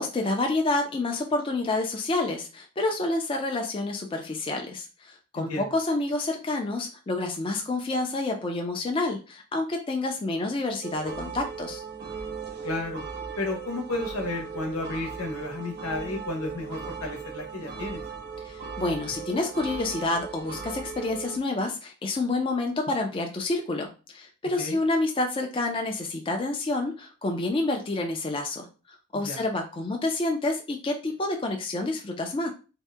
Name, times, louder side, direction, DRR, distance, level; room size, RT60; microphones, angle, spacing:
voice 1, 0.0-11.8 18.4-28.7 29.1-32.5, left 2 dB, 25° left, 2 dB, 0.4 m, -28 dB
voice 2, 5.3-5.7 12.6-13.0 13.4-18.0 24.6-24.8 29.1-29.4, left 2 dB, 80° left, 2 dB, 0.9 m, -32 dB
sound 1, 10.8-21.4, right 6 dB, 45° right, 0.5 m, -38 dB
2.7 x 2.1 x 3.4 m, 0.33 s
head